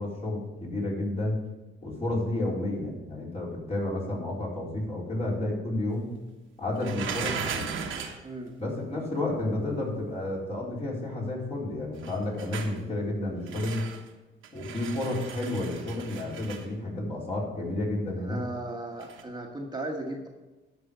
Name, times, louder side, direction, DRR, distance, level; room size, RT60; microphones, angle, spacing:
voice 1, 0.0-1.4 1.8-6.1 6.6-7.7 8.6-13.8 14.5-18.4, left 1 dB, 30° left, -4 dB, 4.1 m, -31 dB
sound 1, 6.8-8.2 12.0-12.8 13.5-14.1 14.4-16.7 19.0-19.2, right 6 dB, 85° right, 1.3 m, -37 dB
voice 2, 18.3-20.3, right 1 dB, 20° right, 0 dB, 1.4 m, -36 dB
11.0 x 5.4 x 6.7 m, 1.1 s
cardioid pair, 90°, 20 cm